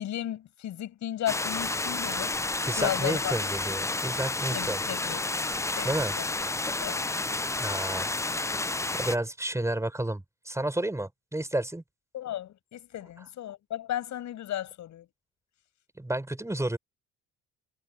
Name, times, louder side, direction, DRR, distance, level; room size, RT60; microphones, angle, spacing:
voice 1, 0.0-2.3 2.8-3.3 4.5-5.2 5.8-6.3 6.8-7.1 12.1-15.1, left 12 dB, 60° left, 7.3 m, -34 dB
sound 1, 1.3-9.2, left 2 dB, 10° left, 0.6 m, -30 dB
voice 2, 2.7-4.8 5.8-6.1 7.6-8.6 8.9-11.8 16.0-16.8, right 1 dB, 10° right, 5.6 m, -31 dB
supercardioid pair, 70°, 33 cm